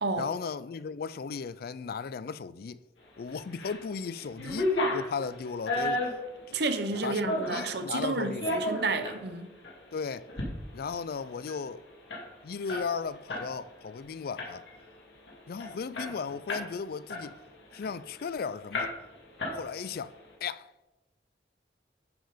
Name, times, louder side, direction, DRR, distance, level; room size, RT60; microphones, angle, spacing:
voice 1, 0.2-2.8 3.2-6.1 6.5-6.6 7.0-7.2 7.5-8.6 9.9-10.3 10.7-11.8 12.4-14.6 15.5-17.4 17.7-18.9 19.5-20.1 20.4-20.7, left 5 dB, 55° left, 0.4 m, -36 dB
sound 1, 3.3-3.8 4.1-7.7 8.2-9.2 9.6-9.8 10.2-10.5 10.8-10.9 11.2-13.5 13.8-14.0 14.4-14.8 15.3-15.4 15.6-16.7 17.1-18.3 18.7-19.1 19.4-20.0, left 1 dB, 90° left, 2.6 m, -33 dB
voice 2, 6.5-9.5, right 3 dB, 65° right, 0.9 m, -31 dB
10.5 x 5.7 x 5.0 m
head